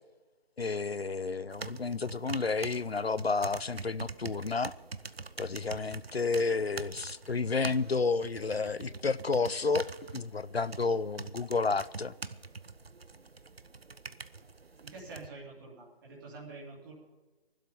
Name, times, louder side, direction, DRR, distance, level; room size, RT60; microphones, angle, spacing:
voice 1, 0.6-4.7 5.4-12.1, left 4 dB, 90° left, 0.7 m, -31 dB
sound 1, 1.5-15.3, right 4 dB, 80° right, 0.9 m, -44 dB
voice 2, 14.8-16.9, right 3 dB, 20° right, 2.8 m, -47 dB
20.5 x 12.0 x 5.4 m
figure-of-eight pair, 155°, 30 cm